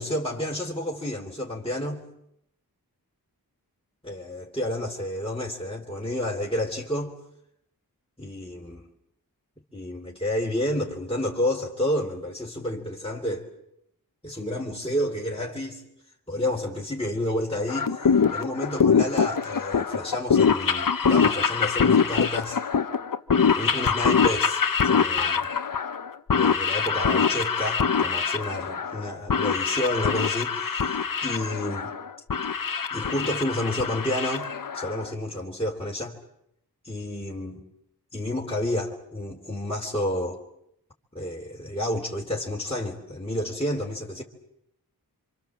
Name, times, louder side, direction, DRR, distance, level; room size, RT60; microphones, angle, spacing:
voice 1, 0.0-2.0 4.0-7.1 8.2-8.8 9.7-13.5 14.2-15.8 16.3-18.0 18.3-22.6 23.6-25.5 26.3-31.9 32.9-34.5 34.7-36.2 36.8-37.6 38.1-40.4 41.1-44.2, left 1 dB, 15° left, 3.6 m, -30 dB
sound 1, 17.7-35.1, left 6 dB, 60° left, 1.1 m, -24 dB
26.0 x 26.0 x 7.6 m
cardioid pair, 45°, 37 cm